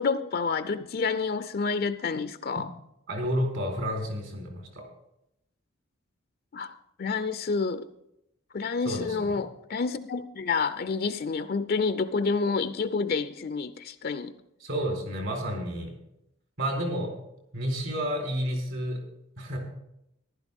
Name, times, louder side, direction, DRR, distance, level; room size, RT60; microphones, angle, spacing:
voice 1, 0.0-2.7 6.5-7.9 8.5-14.3, left 4 dB, 50° left, 12 dB, 0.5 m, -29 dB
voice 2, 3.1-4.8 8.8-9.4 14.6-15.9 16.6-17.1 17.5-19.0 19.4-19.6, equal, 65° right, 2 dB, 4.0 m, -30 dB
14.5 x 11.5 x 3.6 m, 0.82 s
head